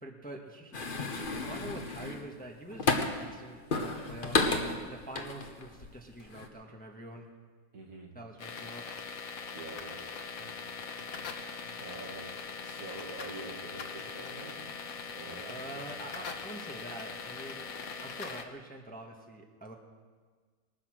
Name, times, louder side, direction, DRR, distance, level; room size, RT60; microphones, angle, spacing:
voice 1, 0.0-0.7 1.3-7.3 8.1-9.0 15.4-17.7 18.0-19.8, right 1 dB, 5° left, 1 dB, 1.2 m, -45 dB
sound 1, 0.7-3.3 3.7-5.9 6.2-6.5, left 3 dB, 35° left, 1.2 m, -32 dB
voice 2, 7.7-8.1 9.5-10.7 11.1-14.8 15.1-16.0, right 2 dB, 60° right, 0 dB, 2.6 m, -47 dB
sound 2, 8.4-18.4, left 5 dB, 65° left, 1.4 m, -41 dB
21.0 x 10.0 x 6.3 m, 1.5 s
omnidirectional pair, 1.7 m